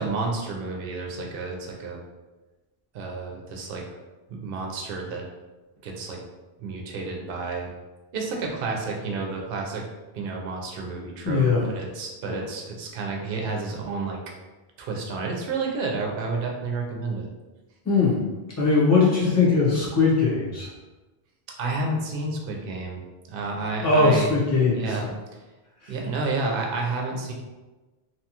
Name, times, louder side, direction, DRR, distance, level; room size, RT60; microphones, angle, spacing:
voice 1, 0.0-2.0 2.9-3.8 4.3-5.3 5.8-6.2 6.6-7.7 8.1-9.8 10.1-14.2 14.8-17.3 21.5-23.0 23.3-24.3 24.7-25.0 25.9-27.3, right 3 dB, 65° right, 1 dB, 0.7 m, -30 dB
voice 2, 11.2-11.7 12.3-12.4 17.8-18.2 18.6-20.7 23.8-25.1 25.8-25.9, left 4 dB, 15° left, -7 dB, 0.8 m, -20 dB
2.9 x 2.3 x 2.8 m, 1.2 s
omnidirectional pair, 1.1 m